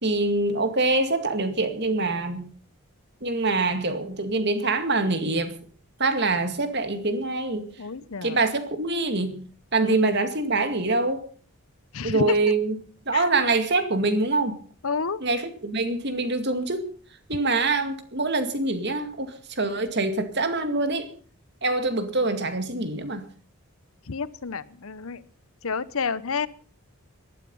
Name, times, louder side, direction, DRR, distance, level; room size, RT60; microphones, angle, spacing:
voice 1, 0.0-2.5 3.2-5.6 6.0-7.7 8.2-9.4 9.7-11.2 12.0-12.8 13.1-14.6 15.2-16.9 17.3-21.1 21.6-23.2, right 3 dB, 50° right, 9 dB, 2.1 m, -25 dB
voice 2, 7.8-8.4 9.8-10.2 11.9-12.4 13.1-13.2 14.8-15.2 24.1-25.2 25.6-26.5, left 5 dB, 70° left, 17 dB, 0.9 m, -29 dB
18.5 x 12.5 x 5.5 m, 0.43 s
head